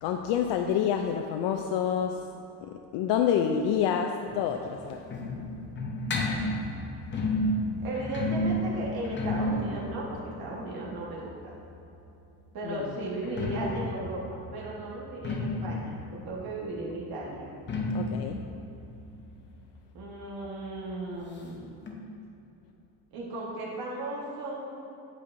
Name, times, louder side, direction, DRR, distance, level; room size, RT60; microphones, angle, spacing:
voice 1, 0.0-2.3 2.6-5.1 12.6-12.8 17.9-18.4, left 8 dB, 85° left, 4 dB, 0.5 m, -28 dB
sound 1, 4.3-12.0 13.1-20.5 20.7-20.8 21.1-21.2 21.9-22.0, left 1 dB, 25° left, 0.8 m, -32 dB
voice 2, 7.8-11.5 12.5-17.5 19.9-21.7 23.1-24.8, right 2 dB, 55° right, -5 dB, 1.4 m, -36 dB
8.3 x 8.2 x 2.6 m, 2.8 s
cardioid pair, 145°, 42 cm